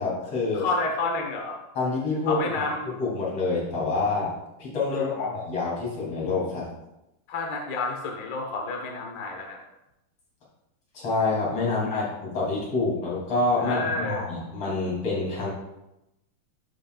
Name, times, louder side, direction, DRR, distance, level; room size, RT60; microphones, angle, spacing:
voice 1, 0.0-0.6 1.8-2.7 3.0-4.3 4.6-6.7 10.9-15.5, left 3 dB, 50° left, -6 dB, 3.7 m, -27 dB
voice 2, 0.5-1.5 2.3-2.9 4.9-5.3 7.3-9.6 11.8-12.0 13.6-14.4, left 3 dB, 70° left, 1 dB, 1.0 m, -30 dB
12.0 x 5.7 x 2.3 m, 0.91 s
omnidirectional pair, 3.6 m